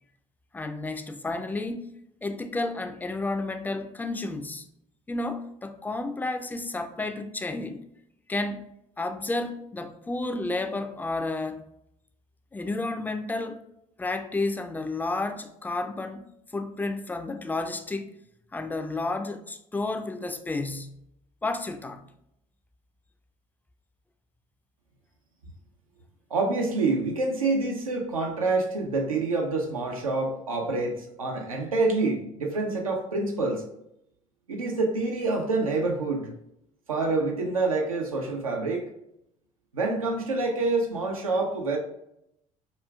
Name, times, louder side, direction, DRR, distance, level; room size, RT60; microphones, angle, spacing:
voice 1, 0.5-1.9 2.2-4.7 5.1-7.8 8.3-8.7 9.0-11.7 12.5-13.6 14.0-18.2 18.5-20.9 21.4-22.0, left 2 dB, 10° left, 0.3 m, -31 dB
voice 2, 26.3-33.6 34.5-36.3 36.9-38.9 39.7-41.8, right 3 dB, 85° right, 0.6 m, -27 dB
4.9 x 2.4 x 2.3 m
figure-of-eight pair, 55°, 17 cm